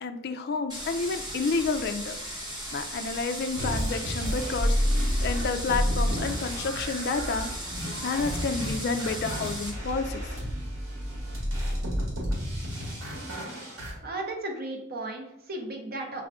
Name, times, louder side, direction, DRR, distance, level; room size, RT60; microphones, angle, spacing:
voice 1, 0.0-2.2 2.7-7.5 8.0-10.3, left 4 dB, 50° left, 8 dB, 0.4 m, -30 dB
sound 1, 0.7-9.7, equal, 20° right, 1.0 m, -37 dB
sound 2, 3.6-13.9, equal, 70° right, 1.3 m, -30 dB
voice 2, 14.0-16.3, right 2 dB, 45° right, 1 dB, 0.8 m, -35 dB
5.5 x 2.5 x 3.4 m, 0.81 s
head